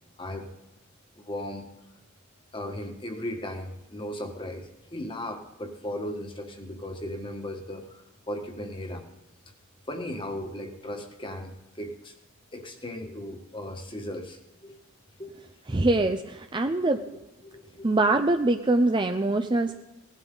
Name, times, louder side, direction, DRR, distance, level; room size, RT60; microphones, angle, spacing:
voice 1, 0.2-0.5 1.2-1.6 2.5-9.0 9.9-12.1 12.5-14.8 15.2-15.5 17.4-17.8, left 1 dB, 25° left, 4 dB, 1.5 m, -37 dB
voice 2, 15.7-17.0 17.8-19.7, right 2 dB, 20° right, 7 dB, 0.5 m, -23 dB
18.0 x 11.5 x 3.9 m, 0.95 s
head